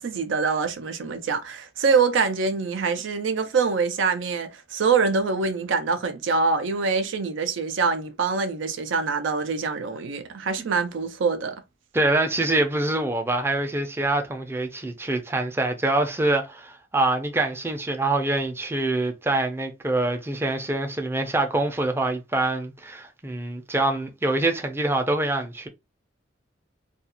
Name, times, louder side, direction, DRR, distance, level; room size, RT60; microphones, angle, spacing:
voice 1, 0.0-11.6, right 5 dB, 80° right, 0.5 m, -24 dB
voice 2, 11.9-25.7, right 2 dB, 15° right, 0.4 m, -25 dB
2.4 x 2.3 x 2.8 m
head